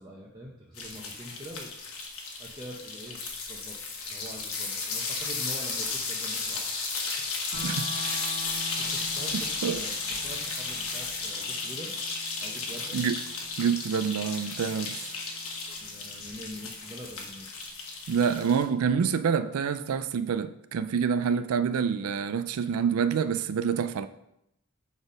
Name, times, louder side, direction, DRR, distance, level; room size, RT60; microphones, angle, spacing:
voice 1, 0.0-1.8 2.4-3.8 4.1-6.7 8.8-12.0 12.4-13.0 15.7-17.5, equal, 20° right, 0.8 m, -44 dB
sound 1, 0.8-18.7, left 4 dB, 80° left, 1.3 m, -34 dB
sound 2, 7.5-17.5, right 1 dB, 55° left, 1.2 m, -46 dB
voice 2, 13.6-15.0 18.1-24.1, right 6 dB, 85° right, 0.4 m, -27 dB
6.9 x 4.2 x 5.0 m
head